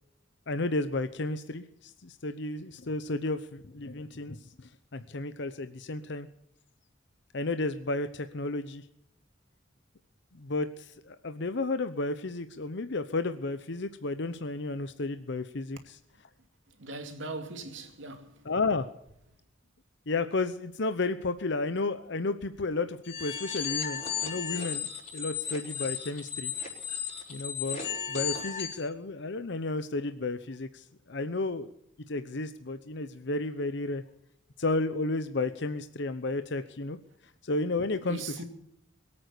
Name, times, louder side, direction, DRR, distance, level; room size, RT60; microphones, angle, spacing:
voice 1, 0.5-6.3 7.3-8.9 10.3-16.0 18.4-18.9 20.1-26.5 27.3-31.7 32.1-34.0 34.6-37.0 37.4-38.4, left 2 dB, 65° left, 0.9 m, -32 dB
voice 2, 16.8-18.4 38.1-38.4, right 3 dB, 75° right, 2.4 m, -39 dB
sound 1, 23.0-28.8, left 8 dB, 35° left, 5.2 m, -35 dB
22.5 x 8.8 x 6.7 m
head